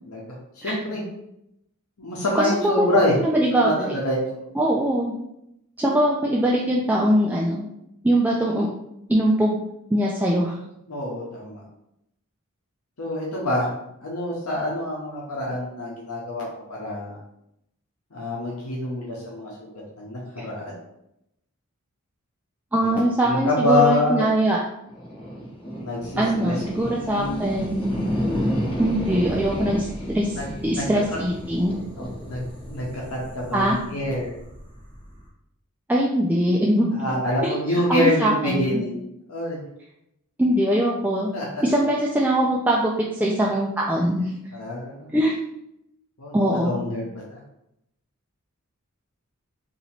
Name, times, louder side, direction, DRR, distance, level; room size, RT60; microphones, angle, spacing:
voice 1, 0.6-1.0 2.0-3.1 3.5-4.5 10.9-11.6 13.0-13.7 14.0-17.2 18.1-19.7 20.0-20.7 23.2-24.3 25.8-27.4 30.7-30.8 32.0-32.4 32.7-34.3 36.9-39.0 39.3-39.6 41.3-41.6 44.5-45.1 46.2-47.4, left 1 dB, 85° left, -4 dB, 0.9 m, -26 dB
voice 2, 2.3-3.9 4.6-5.1 5.8-7.7 8.0-8.7 9.1-9.6 9.9-10.5 20.4-20.5 22.7-24.6 26.2-28.0 28.8-31.8 33.5-33.8 35.9-36.9 37.4-38.8 40.4-41.3 41.6-42.9 43.2-44.4 45.1-45.4 46.3-46.8, right 1 dB, 10° right, -3 dB, 0.3 m, -22 dB
sound 1, 24.9-35.3, equal, 25° left, 1.0 m, -31 dB
2.9 x 2.7 x 4.3 m, 0.81 s
head